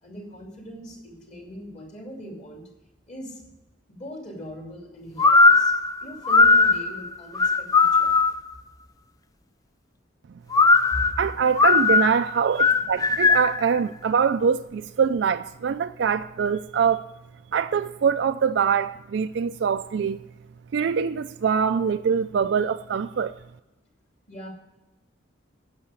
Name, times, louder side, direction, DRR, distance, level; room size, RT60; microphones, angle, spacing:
voice 1, 0.0-2.7 3.1-3.4 3.9-5.7 6.0-8.2 10.9-11.1 24.3-24.5, equal, 35° left, 2.7 m, -40 dB
sound 1, 5.2-8.5 10.5-13.6, left 3 dB, 20° left, 0.4 m, -18 dB
voice 2, 11.2-17.0 17.5-20.2 20.7-23.4, right 6 dB, 60° right, 0.3 m, -24 dB
9.7 x 6.6 x 8.7 m
head